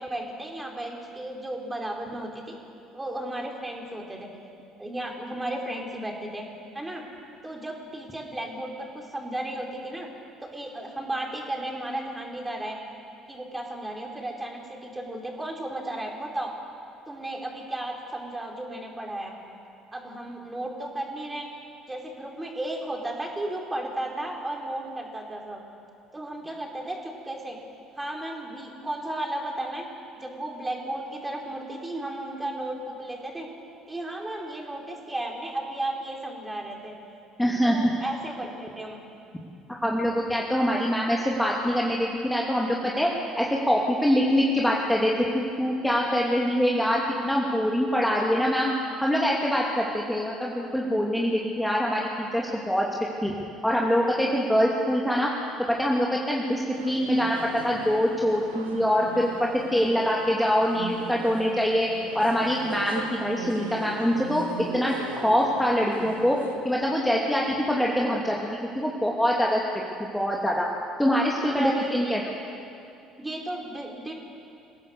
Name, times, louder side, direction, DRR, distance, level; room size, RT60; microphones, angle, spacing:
voice 1, 0.0-2.6 2.9-4.3 4.8-6.4 6.7-7.0 7.4-10.1 10.4-12.8 13.3-16.6 17.1-19.3 19.9-21.5 21.9-25.6 26.1-27.6 28.0-29.9 30.1-33.5 33.9-36.9 37.6-39.0 71.6-72.3 73.2-74.2, right 1 dB, 15° right, 1 dB, 4.7 m, -34 dB
voice 2, 37.4-37.9 39.8-43.1 43.4-48.7 49.0-52.9 53.2-53.3 53.6-55.3 55.7-61.9 62.1-64.5 64.7-68.4 68.7-69.6 70.1-70.7 71.0-72.2, equal, 5° left, -3 dB, 2.7 m, -24 dB
sound 1, 56.7-66.6, right 4 dB, 80° right, 1.7 m, -39 dB
27.0 x 17.0 x 6.8 m, 2.5 s
figure-of-eight pair, 55°, 0 cm